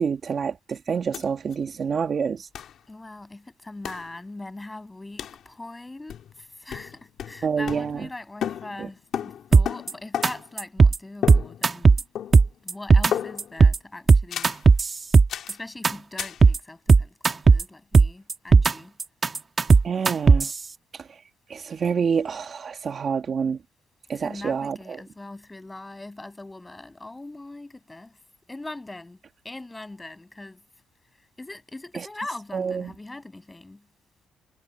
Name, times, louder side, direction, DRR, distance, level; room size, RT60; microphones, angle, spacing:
voice 1, 0.0-2.5 7.4-8.1 8.8-8.9 19.8-20.5 20.9-21.2 21.5-23.6 24.1-25.0 31.9-32.1 32.5-32.9, right 6 dB, 50° right, 1.9 m, -27 dB
sound 1, 1.1-1.2 1.5-1.6 2.5-2.8 3.8-4.1 5.2-5.4 6.1-6.4 6.7-8.2 8.4-10.6 11.2-11.9 12.2-12.6 13.1-13.6 14.3-14.6 15.3-15.6 16.2-16.4, left 9 dB, 70° left, 3.0 m, -33 dB
voice 2, 2.9-12.0 12.6-14.6 15.5-19.0 24.1-28.2 28.5-30.6 31.4-33.8, left 2 dB, 15° left, 7.9 m, -41 dB
sound 2, 9.5-9.9 10.2-10.3 10.6-11.0 11.3-12.0 12.3-13.1 13.4-13.8 14.1-15.5 15.8-15.9 16.2-16.6 16.9-17.6 17.9-18.7 19.0-20.5, right 4 dB, 35° right, 1.4 m, -15 dB
cardioid pair, 90°, 0 cm